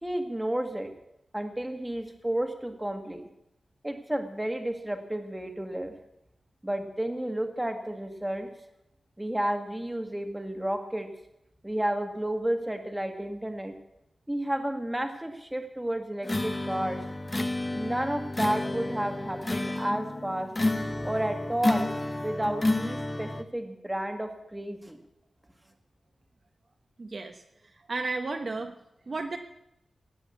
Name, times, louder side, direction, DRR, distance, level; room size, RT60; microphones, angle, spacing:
voice 1, 0.0-0.9 1.3-3.2 3.8-5.9 6.6-8.5 9.2-11.1 11.6-13.7 14.3-17.0 17.7-20.5 21.0-21.9 22.2-25.0, right 1 dB, 10° right, 5 dB, 1.7 m, -31 dB
sound 1, 16.2-23.4, left 2 dB, 20° left, 0.8 m, -30 dB
voice 2, 27.0-28.7 29.1-29.4, right 3 dB, 45° right, 5 dB, 1.0 m, -34 dB
18.0 x 7.8 x 8.3 m, 0.83 s
wide cardioid pair, 150°, 0 cm